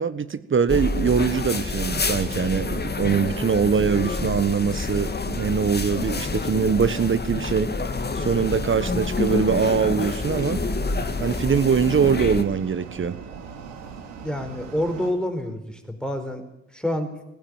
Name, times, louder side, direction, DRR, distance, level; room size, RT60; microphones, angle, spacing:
voice 1, 0.0-7.7 8.1-10.6 11.2-13.2, right 6 dB, 35° right, 14 dB, 1.4 m, -22 dB
sound 1, 0.7-12.4, left 3 dB, 25° left, 2.4 m, -27 dB
sound 2, 8.6-15.1, right 6 dB, 85° right, 3.4 m, -42 dB
voice 2, 14.2-16.4 16.7-17.1, left 1 dB, ahead, 6 dB, 4.5 m, -27 dB
18.5 x 15.5 x 9.6 m, 0.90 s
hypercardioid pair, 55°, 36 cm